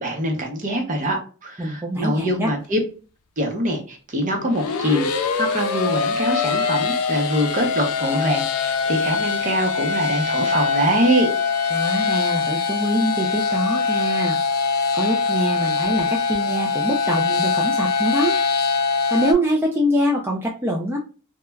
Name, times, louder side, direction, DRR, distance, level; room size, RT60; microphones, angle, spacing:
voice 1, 0.0-2.8 3.4-11.3, right 1 dB, 35° right, 2 dB, 0.7 m, -23 dB
voice 2, 1.6-2.5 11.7-14.4 14.9-18.4 19.1-21.0, equal, 10° right, -2 dB, 0.4 m, -24 dB
sound 1, 4.4-19.3, left 5 dB, 85° left, 0.4 m, -23 dB
3.1 x 2.2 x 2.2 m, 0.36 s
head